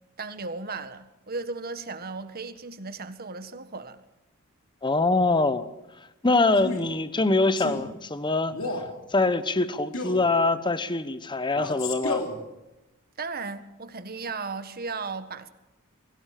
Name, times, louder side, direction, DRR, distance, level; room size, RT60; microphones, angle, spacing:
voice 1, 0.2-4.0 13.2-15.5, right 4 dB, 45° right, 1.6 m, -35 dB
voice 2, 4.8-5.7 6.2-8.5 9.1-12.3, left 3 dB, 20° left, 1.1 m, -24 dB
Male speech man speaking, 6.5-6.9 7.6-7.8 8.5-8.9 9.9-10.3 11.5-12.4, left 2 dB, 70° left, 3.4 m, -32 dB
24.0 x 17.0 x 7.6 m
head